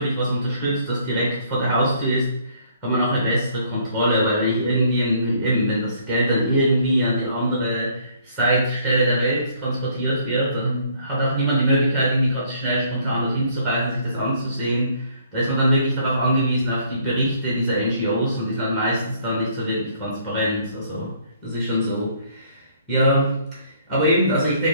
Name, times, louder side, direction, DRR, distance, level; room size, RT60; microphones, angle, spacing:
voice 1, 0.0-21.1 21.4-24.7, equal, 5° right, -5 dB, 1.4 m, -22 dB
4.0 x 2.2 x 3.4 m, 0.75 s
hypercardioid pair, 155°, 0 cm